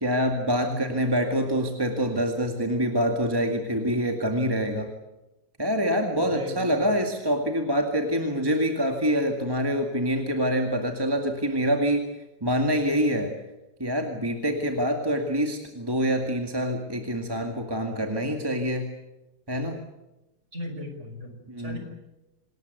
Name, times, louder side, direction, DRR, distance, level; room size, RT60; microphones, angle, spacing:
voice 1, 0.0-4.9 5.6-12.1 12.4-13.3 13.8-18.9 19.5-19.8 21.5-21.8, equal, 15° right, 3 dB, 2.0 m, -26 dB
voice 2, 6.2-6.9 20.5-21.8, left 1 dB, 35° right, 5 dB, 5.8 m, -37 dB
27.0 x 20.0 x 8.1 m, 0.98 s
omnidirectional pair, 2.0 m